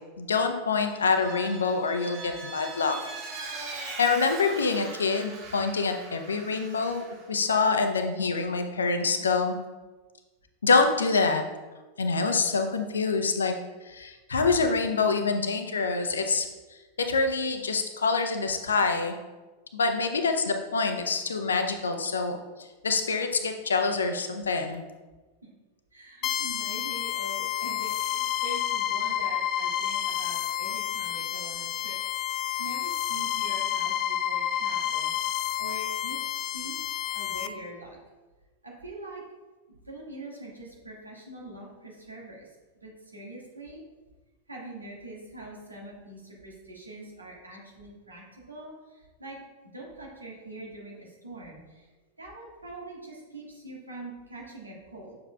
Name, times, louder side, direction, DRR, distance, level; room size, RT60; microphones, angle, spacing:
voice 1, 0.2-3.0 3.8-9.5 10.6-11.4 12.0-13.5 13.9-16.5 17.0-19.2 19.7-22.4 22.8-24.8, left 4 dB, 70° left, 6 dB, 0.7 m, -26 dB
Vehicle, 0.9-7.3, right 3 dB, 40° right, 1.4 m, -41 dB
voice 2, 25.9-32.0 32.2-35.1 35.6-36.8 37.1-38.0 38.6-39.2 39.9-42.5 42.8-43.8 44.5-49.4 49.7-51.9 52.2-55.2, right 2 dB, 80° right, -3 dB, 1.7 m, -43 dB
sound 1, 26.2-37.5, left 11 dB, 35° left, 0.4 m, -30 dB
7.7 x 6.9 x 2.3 m, 1.2 s
figure-of-eight pair, 90°, 0 cm